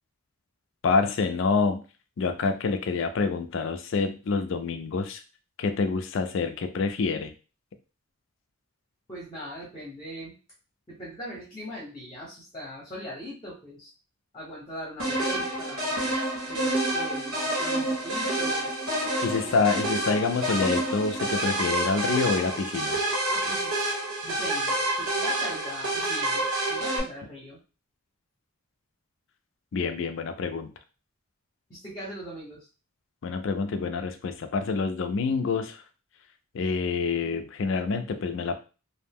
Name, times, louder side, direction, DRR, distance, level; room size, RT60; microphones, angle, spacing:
voice 1, 0.8-1.8 2.2-5.2 5.6-7.3 19.2-23.0 29.7-30.7 33.2-35.8 36.5-38.6, left 4 dB, 55° left, 8 dB, 0.4 m, -27 dB
voice 2, 9.1-10.3 10.9-13.9 14.3-15.9 16.5-18.7 19.4-19.5 23.3-24.0 24.2-27.6 31.7-32.7, equal, 20° left, -5 dB, 0.8 m, -40 dB
sound 1, 15.0-27.0, right 1 dB, 70° right, 1.1 m, -28 dB
2.5 x 2.0 x 3.4 m, 0.33 s
head